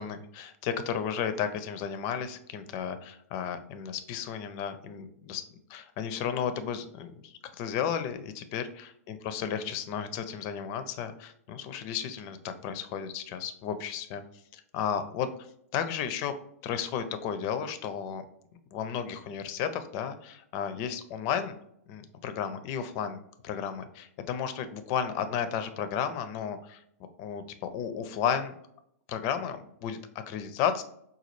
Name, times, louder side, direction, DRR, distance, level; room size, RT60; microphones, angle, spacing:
voice 1, 0.0-5.4 5.7-14.2 14.5-15.3 15.7-16.3 16.6-18.2 18.7-21.6 21.9-26.8 27.2-28.5 29.1-30.8, left 8 dB, 40° left, 9 dB, 0.4 m, -33 dB
4.1 x 2.3 x 3.1 m, 0.73 s
hypercardioid pair, 115°, 8 cm